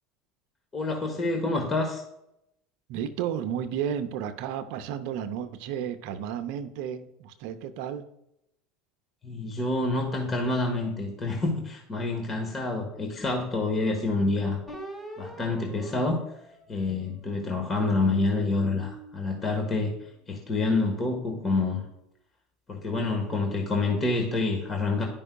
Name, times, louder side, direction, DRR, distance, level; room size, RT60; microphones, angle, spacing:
voice 1, 0.7-2.0 9.2-14.6 15.2-16.2 16.7-19.9 20.3-21.8 22.7-25.1, left 3 dB, 30° left, 2 dB, 1.3 m, -27 dB
voice 2, 2.9-8.1, right 9 dB, 65° right, 10 dB, 0.6 m, -32 dB
sound 1, 14.7-17.4 17.9-20.4, equal, 5° left, 1.6 m, -45 dB
11.0 x 5.4 x 2.3 m, 0.82 s
hypercardioid pair, 90°, 0 cm